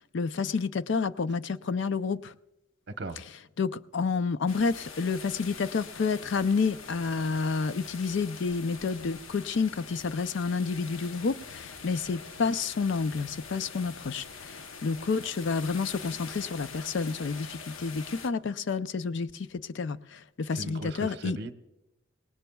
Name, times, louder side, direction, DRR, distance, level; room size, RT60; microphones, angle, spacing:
voice 1, 0.1-2.3 3.6-21.4, left 4 dB, 60° left, 0.4 m, -30 dB
sound 1, 4.5-18.3, left 5 dB, 75° left, 0.8 m, -44 dB
voice 2, 20.5-21.5, right 2 dB, 55° right, 1.0 m, -37 dB
29.0 x 18.5 x 2.3 m
head